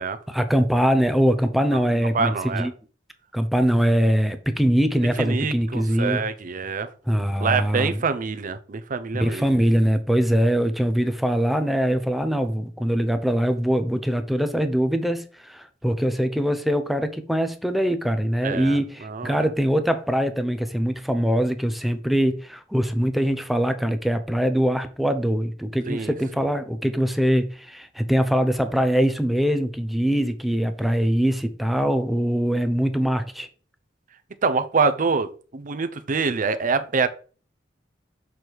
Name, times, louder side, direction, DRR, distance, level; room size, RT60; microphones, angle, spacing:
voice 1, 0.3-2.7 3.3-6.3 7.1-8.0 9.1-33.5, equal, ahead, 0.6 m, -22 dB
voice 2, 2.1-2.7 5.2-6.9 7.4-9.5 18.4-18.8 19.1-19.4 25.9-26.1 34.4-37.1, right 4 dB, 45° right, 0.6 m, -25 dB
6.2 x 3.4 x 4.5 m
head